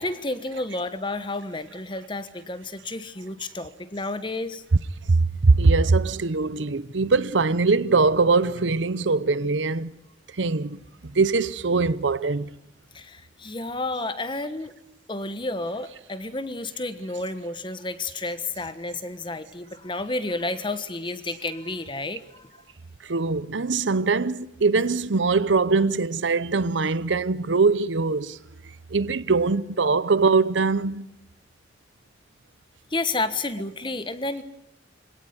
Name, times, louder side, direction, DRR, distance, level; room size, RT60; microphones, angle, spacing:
voice 1, 0.0-4.6 12.9-14.7 15.1-22.4 32.9-34.4, left 2 dB, 25° left, 1.3 m, -31 dB
voice 2, 5.1-9.9 10.4-12.5 23.0-28.4 28.9-31.1, right 4 dB, 85° right, 0.8 m, -22 dB
25.0 x 17.5 x 9.5 m
head